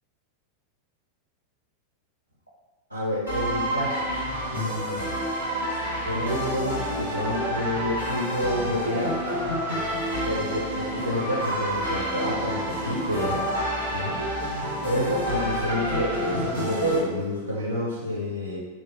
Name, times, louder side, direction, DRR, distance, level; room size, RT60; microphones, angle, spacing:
voice 1, 2.9-4.1 4.5-5.1 5.7-9.2 10.1-13.5 13.9-14.2 14.8-18.7, equal, 90° right, -4 dB, 0.4 m, -29 dB
sound 1, 3.3-17.0, equal, 80° left, 1.0 m, -29 dB
2.9 x 2.3 x 3.2 m, 1.3 s
figure-of-eight pair, 90°, 0 cm